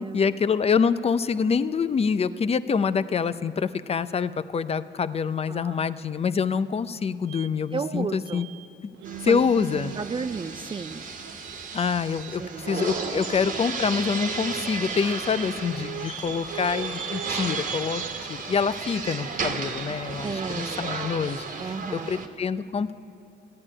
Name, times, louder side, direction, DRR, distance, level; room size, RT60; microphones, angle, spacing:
voice 1, 0.0-8.4 8.8-8.9 9.2-9.9 11.7-12.4 12.7-18.0 18.3-21.4 21.9-22.9, left 6 dB, 30° left, 14 dB, 0.5 m, -26 dB
sound 1, 7.3-7.5 8.2-8.7 8.9-10.4 10.8-13.6 14.0-17.7 17.9-18.2 18.7-18.8 19.5-20.0, right 13 dB, 80° right, 0.5 m, -41 dB
voice 2, 7.7-8.5 9.3-9.4 9.9-11.0 12.4-13.1 20.2-20.9 21.6-22.3, right 5 dB, 25° right, 10 dB, 0.4 m, -33 dB
sound 2, 9.0-22.3, right 4 dB, 40° right, 1.4 m, -34 dB
14.0 x 9.7 x 9.9 m, 2.8 s
cardioid pair, 90°, 20 cm